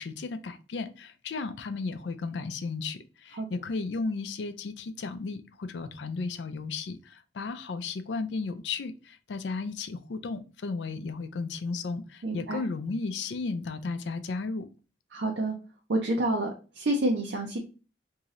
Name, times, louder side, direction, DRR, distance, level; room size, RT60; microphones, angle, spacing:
voice 1, 0.0-14.7, left 4 dB, 75° left, 10 dB, 0.4 m, -34 dB
voice 2, 12.2-12.6 15.1-15.6 15.9-16.5 16.7-17.6, right 1 dB, 75° right, 1 dB, 0.6 m, -28 dB
3.0 x 2.7 x 3.6 m, 0.34 s
head